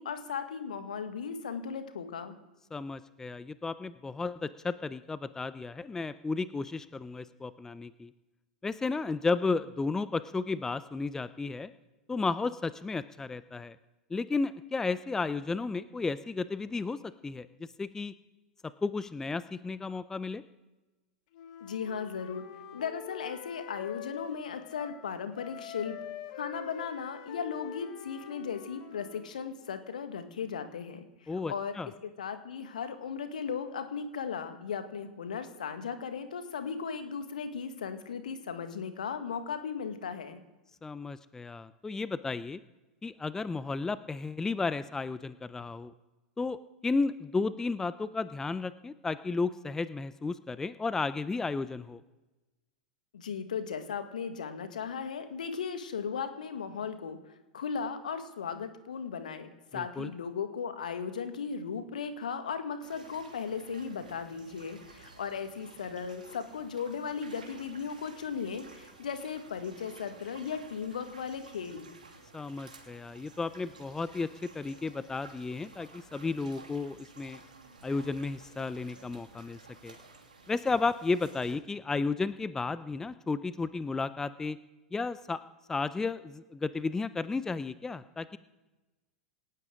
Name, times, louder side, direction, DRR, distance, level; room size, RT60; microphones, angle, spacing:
voice 1, 0.0-2.4 21.6-22.5 22.7-26.0 26.3-31.7 32.0-40.4 53.1-57.2 57.5-71.9, left 6 dB, 65° left, 9 dB, 1.7 m, -37 dB
voice 2, 2.7-8.1 8.6-11.7 12.1-13.8 14.1-18.1 18.8-20.4 31.3-31.9 40.8-42.6 43.0-45.9 46.4-52.0 59.7-60.1 72.3-77.4 77.8-80.0 80.5-84.6 84.9-85.4 85.7-88.4, left 4 dB, 10° left, 15 dB, 0.5 m, -33 dB
Wind instrument woodwind instrument, 21.3-25.1 25.3-29.3, left 9 dB, 50° left, 1.8 m, -45 dB
sound 1, 62.8-81.5, right 3 dB, 75° right, 2.8 m, -53 dB
27.5 x 12.0 x 3.8 m, 1.1 s
figure-of-eight pair, 90°, 5 cm